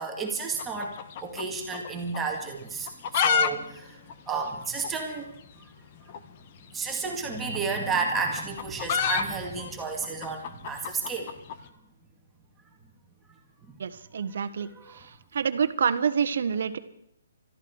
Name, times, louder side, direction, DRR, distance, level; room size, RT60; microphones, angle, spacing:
voice 1, 0.0-5.3 5.6-5.7 6.7-11.3 13.6-13.7 14.6-15.1, right 4 dB, 10° right, 0 dB, 2.3 m, -32 dB
sound 1, 0.5-1.9 2.1-2.2 2.8-3.5 3.8-3.9 4.1-4.2 4.8-4.9 6.1-6.3 7.4-11.6, left 7 dB, 40° left, 1.2 m, -28 dB
voice 2, 13.8-14.7 15.3-16.8, right 7 dB, 65° right, 11 dB, 1.3 m, -27 dB
21.5 x 14.0 x 4.8 m, 0.71 s
hypercardioid pair, 155°, 0 cm